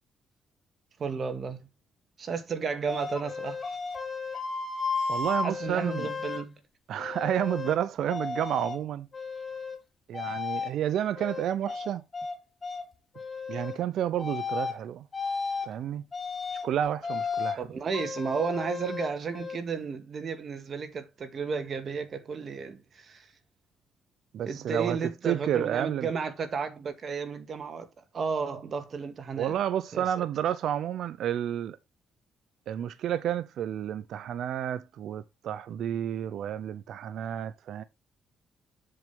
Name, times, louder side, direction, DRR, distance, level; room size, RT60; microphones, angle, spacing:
voice 1, 1.0-1.7 2.2-3.8 5.4-6.6 17.6-23.3 24.5-27.9 28.1-29.6 29.9-30.3, right 5 dB, 50° right, 2.0 m, -33 dB
sound 1, 2.9-6.4 7.0-7.8 8.1-8.8 9.1-9.8 10.1-10.7 11.2-12.4 12.6-12.8 13.2-13.8 14.2-14.8 15.1-15.7 16.1-16.7 17.0-17.6 17.9-19.6, left 4 dB, 30° left, 4.4 m, -34 dB
voice 2, 5.1-6.1 6.9-9.1 10.1-12.0 13.5-15.0 15.6-16.0 16.6-17.7 24.3-25.0 25.3-26.1 29.4-31.8 32.7-37.8, right 10 dB, 75° right, 0.6 m, -30 dB
7.8 x 7.6 x 3.4 m
cardioid pair, 90°, 0 cm